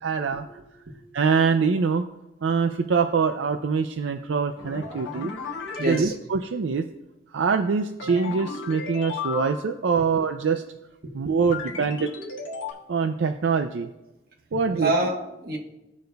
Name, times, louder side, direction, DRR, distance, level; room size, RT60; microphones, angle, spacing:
voice 1, 0.0-0.5 1.1-2.0 2.4-5.3 5.8-6.8 7.3-10.6 11.1-12.1 12.9-13.9 14.5-14.9, right 5 dB, 75° right, 7 dB, 0.4 m, -24 dB
sound 1, 4.6-6.0 8.0-9.8 11.5-12.7, left 4 dB, 80° left, 1.3 m, -34 dB
voice 2, 5.8-6.1 10.0-10.1 11.0-11.3 14.5-15.6, right 2 dB, 50° right, 0 dB, 1.2 m, -28 dB
15.5 x 5.2 x 2.3 m, 0.96 s
head